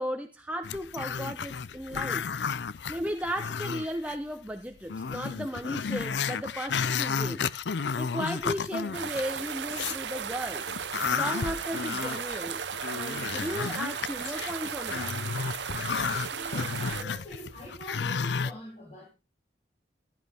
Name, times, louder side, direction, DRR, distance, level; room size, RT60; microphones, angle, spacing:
voice 1, 0.0-2.3 2.9-7.4 7.9-10.7 11.1-12.6 12.9-15.1, equal, 10° right, 5 dB, 0.8 m, -35 dB
Growling, 0.6-4.1 4.5-4.6 4.9-10.0 10.4-18.5, left 6 dB, 80° left, 0.5 m, -32 dB
sound 1, 8.9-17.0, right 7 dB, 85° right, 0.8 m, -35 dB
voice 2, 16.3-19.1, equal, 45° left, -3 dB, 5.9 m, -44 dB
15.0 x 11.5 x 3.5 m, 0.30 s
head